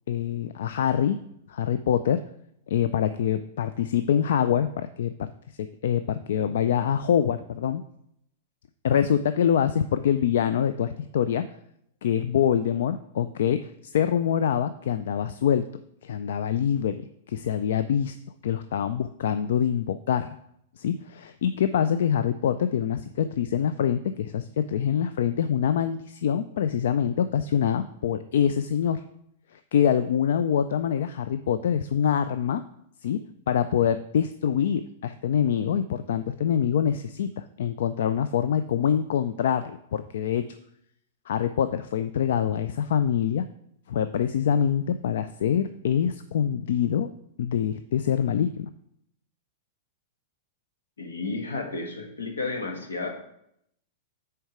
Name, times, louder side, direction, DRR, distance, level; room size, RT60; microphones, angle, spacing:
voice 1, 0.1-1.2 1.5-2.2 2.7-5.3 5.6-7.8 8.8-11.4 12.0-15.7 16.0-18.2 18.4-20.3 20.8-29.0 29.5-32.6 33.0-33.2 33.5-40.4 41.3-43.4 43.9-47.1 47.4-48.7, left 8 dB, 70° left, 11 dB, 0.3 m, -25 dB
voice 2, 51.0-53.1, left 3 dB, 90° left, 3 dB, 1.3 m, -32 dB
6.3 x 4.5 x 4.9 m, 0.74 s
hypercardioid pair, 115°, 0 cm